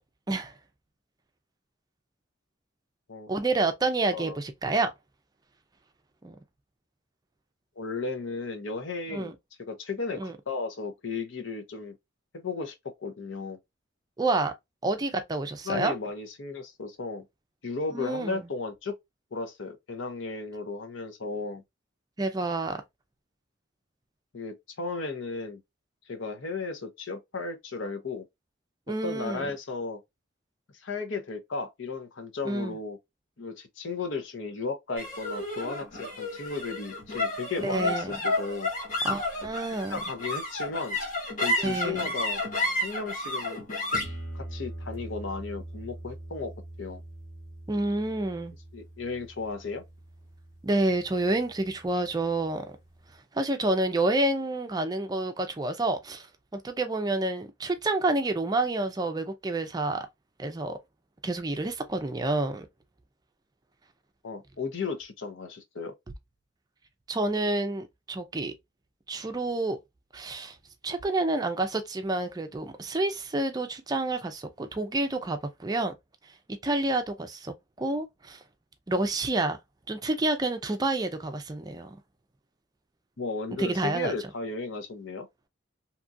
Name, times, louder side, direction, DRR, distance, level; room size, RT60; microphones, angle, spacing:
voice 1, 3.3-4.9 6.2-6.4 9.1-9.3 10.2-10.3 14.2-14.5 14.8-16.0 17.9-18.5 22.2-22.8 28.9-29.5 32.5-32.8 37.6-38.2 39.0-40.0 41.6-42.1 47.7-48.5 50.6-52.8 53.3-56.3 56.5-60.1 60.4-60.8 61.2-62.7 67.1-68.6 69.1-69.8 70.1-70.6 70.8-75.9 76.6-78.4 78.9-79.6 79.9-82.0 83.6-84.1, right 2 dB, 20° right, 0.4 m, -29 dB
voice 2, 7.8-9.3 9.6-12.0 12.3-13.6 15.7-17.2 17.6-18.9 19.3-21.6 24.3-25.6 26.1-28.2 28.9-30.0 30.8-33.0 33.4-38.7 39.9-41.0 41.4-42.4 42.8-43.6 44.3-46.5 46.8-47.0 48.7-49.8 64.2-65.9 83.2-85.3, left 4 dB, 75° left, 0.7 m, -35 dB
sound 1, 35.0-51.5, left 1 dB, 40° left, 1.0 m, -33 dB
2.9 x 2.4 x 2.5 m
head